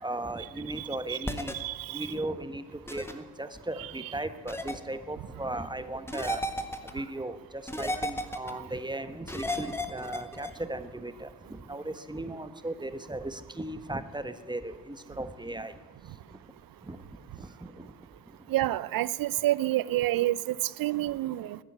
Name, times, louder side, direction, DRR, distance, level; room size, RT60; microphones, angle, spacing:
voice 1, 0.0-1.5 1.9-6.4 6.9-15.7 16.9-17.0 17.4-17.9, right 1 dB, 10° right, 11 dB, 1.2 m, -37 dB
voice 2, 0.8-1.2 1.5-2.1 18.5-21.6, right 15 dB, 55° right, 20 dB, 0.7 m, -29 dB
sound 1, 1.2-1.5 2.9-3.1 4.5-4.8 6.1-6.9 7.7-8.5 9.3-10.5, left 1 dB, 5° left, 1.7 m, -33 dB
14.0 x 9.7 x 9.9 m, 1.4 s
hypercardioid pair, 55°, 40 cm